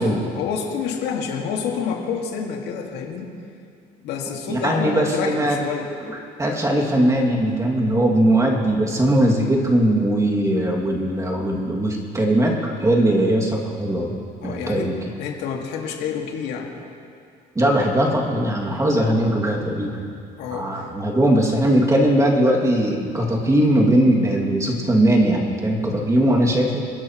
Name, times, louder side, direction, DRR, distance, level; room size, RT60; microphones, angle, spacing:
voice 1, 0.0-3.3 4.0-5.9 14.4-14.9 15.2-16.7 20.4-20.9, left 6 dB, 85° left, 1 dB, 1.9 m, -28 dB
voice 2, 4.5-5.6 6.0-14.2 14.4-15.0 17.5-20.1 20.5-26.8, right 1 dB, 20° right, -1 dB, 2.3 m, -20 dB
27.5 x 10.5 x 3.0 m, 2.4 s
cardioid pair, 110°, 17 cm